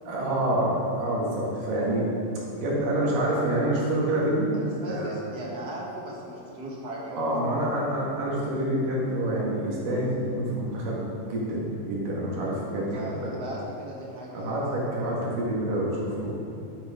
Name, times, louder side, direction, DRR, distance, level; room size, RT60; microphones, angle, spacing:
voice 1, 0.1-2.1 2.5-4.5 4.9-5.1 7.1-13.3 14.4-16.3, right 1 dB, 75° right, -5 dB, 3.6 m, -27 dB
voice 2, 4.5-7.6 12.7-14.8, right 1 dB, 40° right, -4 dB, 1.5 m, -38 dB
11.0 x 9.0 x 3.8 m, 2.8 s
omnidirectional pair, 3.9 m